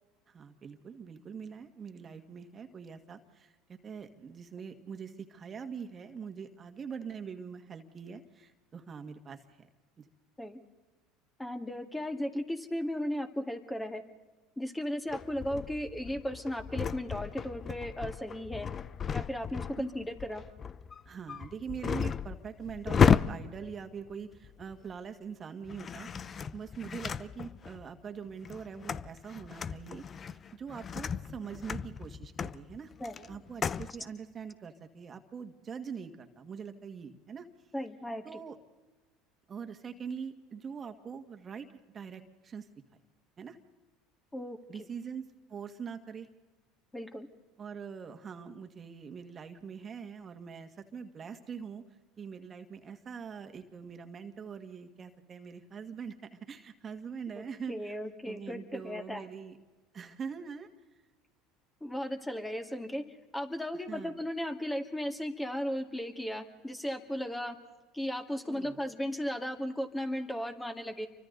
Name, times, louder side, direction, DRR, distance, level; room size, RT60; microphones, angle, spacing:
voice 1, 0.3-3.5 3.8-9.7 10.0-10.1 19.8-19.9 21.1-32.9 33.3-37.5 38.2-38.6 39.5-41.7 41.9-42.7 43.4-43.6 44.7-46.3 47.6-51.8 52.2-57.9 58.3-59.6 59.9-60.7 63.9-64.2 68.5-68.8, right 6 dB, 35° right, 7 dB, 1.8 m, -43 dB
voice 2, 11.4-14.0 14.6-18.7 19.1-20.4 33.0-33.2 37.7-38.4 44.3-44.6 46.9-47.3 57.4-59.3 61.8-63.0 63.3-67.6 67.9-71.1, equal, 10° left, 6 dB, 2.2 m, -36 dB
sound 1, 15.1-24.9 25.7-27.9 28.3-33.9, left 7 dB, 35° left, 0.7 m, -33 dB
29.0 x 24.5 x 4.0 m, 1.2 s
hypercardioid pair, 80°, 0 cm